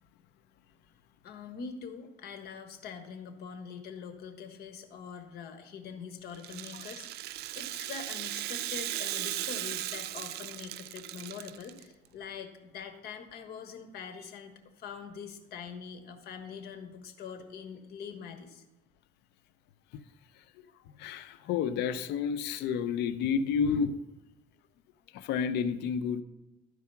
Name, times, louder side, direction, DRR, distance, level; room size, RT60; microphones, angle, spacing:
voice 1, 1.2-18.6, left 6 dB, 70° left, 7 dB, 1.4 m, -44 dB
Rattle (instrument), 6.3-11.8, right 15 dB, 75° right, 0.4 m, -37 dB
voice 2, 21.0-24.0 25.1-26.2, left 6 dB, 85° left, 13 dB, 0.6 m, -30 dB
13.0 x 4.8 x 5.7 m, 0.99 s
cardioid pair, 110°, 17 cm